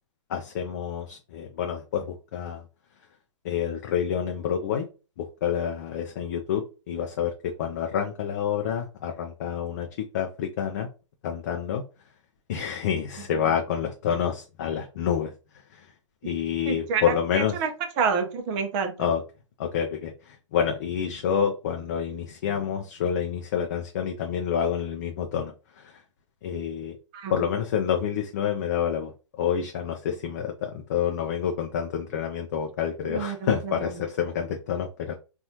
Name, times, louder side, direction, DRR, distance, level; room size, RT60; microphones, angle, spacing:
voice 1, 0.3-2.6 3.4-4.9 5.2-10.9 11.2-11.8 12.5-15.3 15.7-15.9 16.2-17.5 19.0-19.2 19.6-26.0 26.4-27.0 27.3-29.1 29.4-35.1, left 8 dB, 35° left, 3 dB, 0.4 m, -28 dB
voice 2, 16.7-17.7 18.0-19.1 27.1-27.5 33.1-34.0, right 6 dB, 25° right, 6 dB, 0.6 m, -29 dB
4.0 x 2.4 x 2.8 m, 0.32 s
figure-of-eight pair, 125°, 16 cm